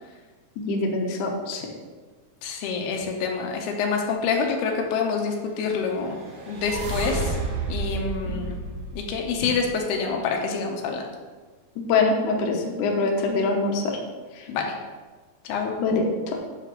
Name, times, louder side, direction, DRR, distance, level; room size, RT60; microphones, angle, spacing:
voice 1, 0.6-1.7 8.3-8.4 11.8-14.0 15.8-16.0, left 3 dB, 70° left, 0 dB, 2.2 m, -24 dB
voice 2, 2.4-6.2 6.5-7.3 7.7-8.6 8.9-11.0 14.5-14.7 15.5-15.7, left 5 dB, 90° left, 1 dB, 3.0 m, -27 dB
sound 1, 5.7-9.9, right 3 dB, 85° right, 3.6 m, -31 dB
9.2 x 6.8 x 3.3 m, 1.4 s
omnidirectional pair, 4.4 m